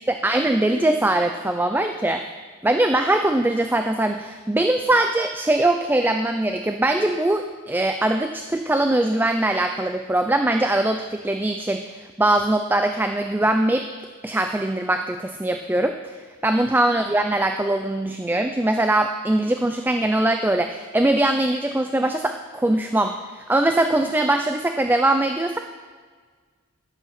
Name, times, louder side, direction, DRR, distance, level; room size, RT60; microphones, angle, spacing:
voice 1, 0.1-2.2 2.6-11.9 12.2-13.9 14.2-16.2 16.4-25.6, right 1 dB, 10° right, 6 dB, 0.4 m, -21 dB
10.5 x 7.7 x 5.8 m, 1.5 s
head